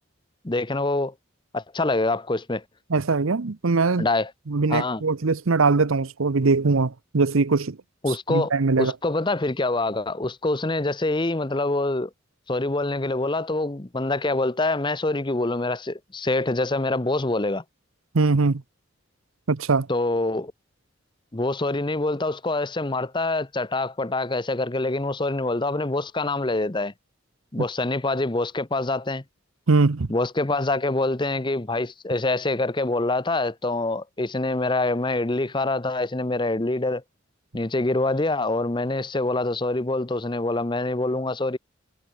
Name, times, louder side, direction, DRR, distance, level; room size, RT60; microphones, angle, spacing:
voice 1, 0.4-1.1 1.5-2.6 4.0-4.3 4.7-5.0 8.0-8.5 8.8-12.1 12.5-17.6 19.9-20.5 21.3-26.9 27.5-29.2 30.1-37.0 37.5-41.6, left 2 dB, 20° left, 0.8 m, -25 dB
voice 2, 2.9-4.1 4.5-7.8 8.3-8.9 18.1-18.6 19.5-19.9 29.7-30.1, right 4 dB, 80° right, 0.8 m, -21 dB
head